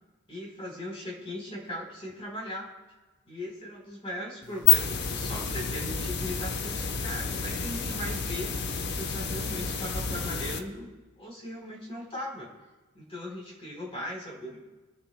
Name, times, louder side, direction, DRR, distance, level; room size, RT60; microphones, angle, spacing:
voice 1, 0.3-2.7 3.3-8.5 8.9-10.9 11.2-12.5 12.9-14.6, equal, 30° left, -2 dB, 3.7 m, -38 dB
sound 1, 4.4-10.6, left 6 dB, 50° left, 0.9 m, -29 dB
24.5 x 10.0 x 2.2 m, 1.2 s
head